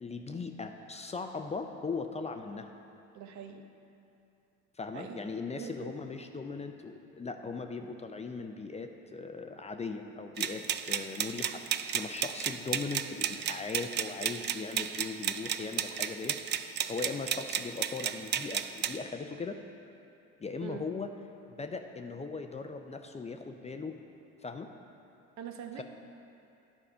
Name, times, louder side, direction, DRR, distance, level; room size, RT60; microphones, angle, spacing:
voice 1, 0.0-2.7 4.8-16.6 16.9-19.6 20.4-21.1 21.6-24.0 24.4-24.7, left 4 dB, 20° left, 6 dB, 0.5 m, -39 dB
voice 2, 3.1-3.7 4.9-5.3 5.6-5.9 20.6-20.9 25.4-25.8, right 7 dB, 55° right, 6 dB, 0.8 m, -43 dB
sound 1, 10.4-19.0, right 9 dB, 35° right, 0.4 m, -33 dB
10.0 x 4.8 x 5.5 m, 2.7 s
hypercardioid pair, 75°, 33 cm